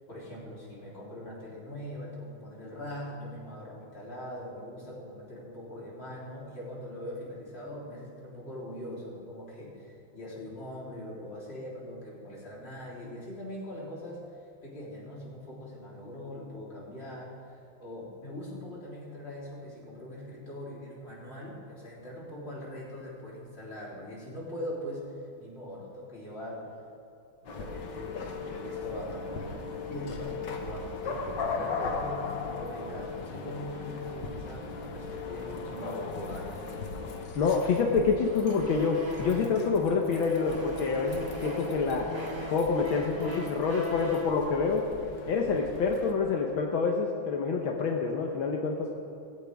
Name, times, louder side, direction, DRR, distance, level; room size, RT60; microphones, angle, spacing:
voice 1, 0.1-26.7 27.4-36.5, left 1 dB, 30° left, -6 dB, 3.8 m, -42 dB
sound 1, 27.4-46.1, left 4 dB, 65° left, 1.8 m, -38 dB
sound 2, 35.4-39.7 40.1-44.4, left 1 dB, 15° right, 2.9 m, -40 dB
voice 2, 37.4-42.1 42.5-44.8 45.3-48.9, left 5 dB, 80° left, 2 dB, 1.8 m, -27 dB
17.0 x 16.5 x 3.5 m, 2.8 s
omnidirectional pair, 2.2 m